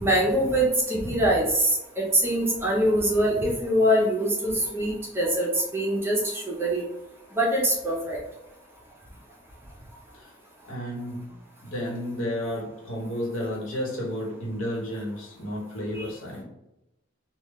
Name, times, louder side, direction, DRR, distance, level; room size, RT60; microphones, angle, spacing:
voice 1, 0.0-6.8 7.3-8.2 15.9-16.0, right 1 dB, 10° right, -3 dB, 0.8 m, -24 dB
voice 2, 10.6-11.3 11.6-16.4, equal, 80° left, -3 dB, 1.2 m, -32 dB
3.7 x 2.4 x 3.1 m, 0.88 s
head